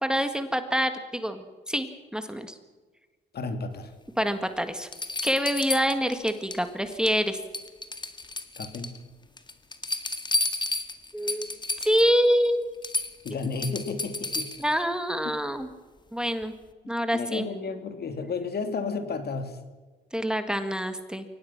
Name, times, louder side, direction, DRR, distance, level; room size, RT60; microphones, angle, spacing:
voice 1, 0.0-2.5 4.2-4.9 5.2-7.4 11.1-11.5 11.8-12.7 14.6-15.7 16.1-16.5 16.9-17.5 20.1-21.3, equal, 5° right, 8 dB, 1.8 m, -26 dB
voice 2, 3.3-3.9 8.6-8.9 13.2-14.7 17.1-19.6, left 4 dB, 55° left, 8 dB, 2.9 m, -32 dB
sound 1, 4.2-4.3 4.9-6.6 6.9-7.3 7.5-9.0 9.4-12.1 12.4-12.5 12.8-14.7 16.4-16.5, left 2 dB, 20° left, 1.9 m, -32 dB
23.5 x 18.5 x 6.0 m, 1.3 s
cardioid pair, 90°, 20 cm